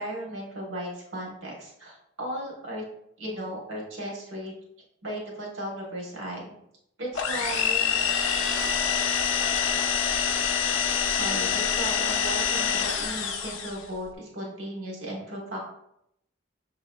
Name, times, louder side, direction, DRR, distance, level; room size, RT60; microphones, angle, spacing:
voice 1, 0.0-2.8 3.2-4.5 5.0-6.5 7.0-8.0 9.5-9.6 11.1-15.6, equal, 75° right, -2 dB, 1.2 m, -36 dB
sound 1, 7.2-13.9, left 7 dB, 75° left, 0.5 m, -26 dB
6.2 x 2.9 x 2.2 m, 0.76 s
head